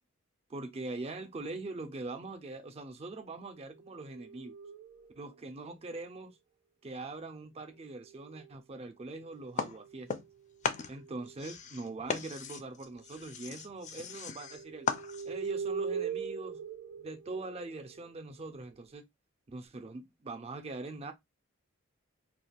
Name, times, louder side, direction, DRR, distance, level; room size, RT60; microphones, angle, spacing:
voice 1, 0.5-4.5 5.2-6.4 6.8-10.1 10.9-14.9 15.3-16.6 17.0-19.0 19.5-21.1, right 2 dB, 30° right, 0.5 m, -42 dB
sound 1, 3.5-5.3 7.7-8.6 9.2-11.4 12.3-12.5 12.8-13.3 14.0-18.7, right 6 dB, 90° right, 0.7 m, -42 dB
sound 2, 9.6-10.4 10.6-15.5, left 5 dB, 35° left, 0.4 m, -37 dB
2.4 x 2.3 x 3.3 m
head